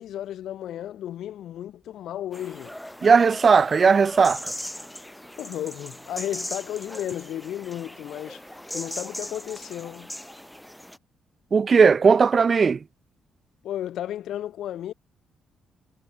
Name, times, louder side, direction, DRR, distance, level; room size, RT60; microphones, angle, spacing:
voice 1, 0.0-2.7 5.4-8.4 8.7-10.1 13.6-14.9, left 11 dB, 75° left, 3.8 m, -33 dB
sound 1, 2.3-11.0, equal, 5° left, 1.4 m, -39 dB
voice 2, 3.0-4.5 11.5-12.8, right 5 dB, 40° right, 0.3 m, -17 dB
cardioid pair, 90°, 0 cm